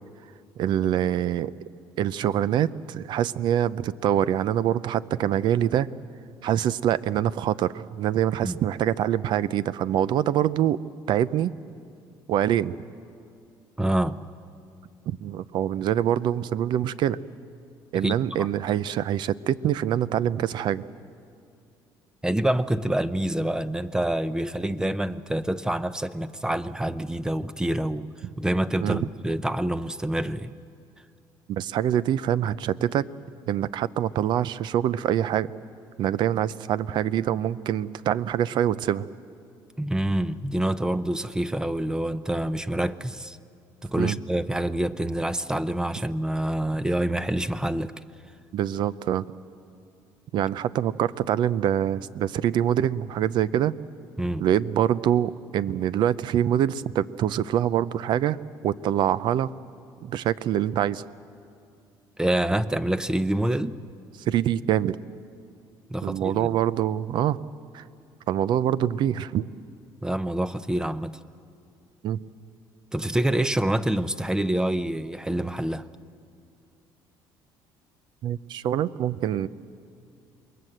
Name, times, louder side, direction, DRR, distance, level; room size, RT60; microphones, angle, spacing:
voice 1, 0.6-1.5 2.0-5.9 6.4-10.8 11.1-11.5 12.3-12.8 15.1-17.2 17.9-20.8 28.8-29.0 31.5-33.1 33.5-35.5 36.0-39.1 44.0-44.2 48.5-49.2 50.3-53.7 54.4-58.4 58.6-59.5 60.0-61.0 64.3-65.0 66.0-67.4 67.7-67.8 68.3-69.5 72.0-72.2 78.2-79.5, right 10 dB, 60° right, 17 dB, 0.7 m, -25 dB
voice 2, 13.8-14.2 18.0-18.5 22.2-28.1 28.4-30.5 39.8-43.4 43.8-47.9 54.2-54.5 62.2-63.8 65.9-66.5 70.0-71.2 72.9-75.9, right 1 dB, 10° right, 14 dB, 0.7 m, -26 dB
28.0 x 21.0 x 7.9 m, 2.4 s
cardioid pair, 120°, 9 cm